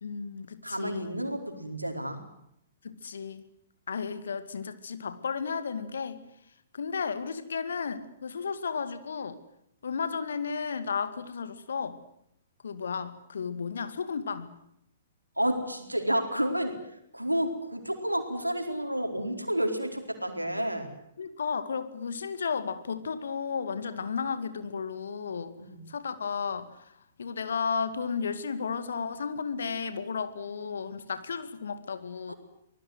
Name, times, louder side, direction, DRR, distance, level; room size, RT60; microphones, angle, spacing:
voice 1, 0.0-1.1 2.8-3.4 3.9-6.2 6.7-9.4 9.8-12.0 12.6-14.5 21.2-25.5 25.9-26.9 27.2-32.3, left 5 dB, 65° left, 12 dB, 2.3 m, -33 dB
voice 2, 0.6-2.2 15.4-16.7 17.1-20.9 25.6-25.8 32.3-32.4, right 1 dB, 90° right, 5 dB, 4.4 m, -30 dB
25.5 x 19.5 x 7.9 m, 0.76 s
figure-of-eight pair, 115°, 0 cm